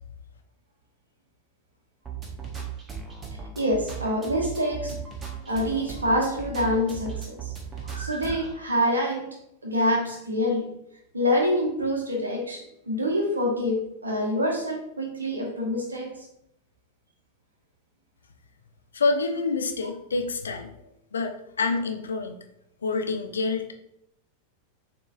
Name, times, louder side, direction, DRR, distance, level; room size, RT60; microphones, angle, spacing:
sound 1, 2.0-8.5, right 6 dB, 20° right, 0.9 m, -37 dB
voice 1, 3.6-5.0 5.4-7.5 7.8-9.4 9.6-10.7 11.1-16.3, equal, 75° right, 1 dB, 1.0 m, -26 dB
voice 2, 18.9-20.7 21.1-22.4 22.8-23.7, left 3 dB, 70° left, 5 dB, 0.5 m, -27 dB
6.7 x 3.0 x 2.4 m, 0.78 s
figure-of-eight pair, 90°, 0 cm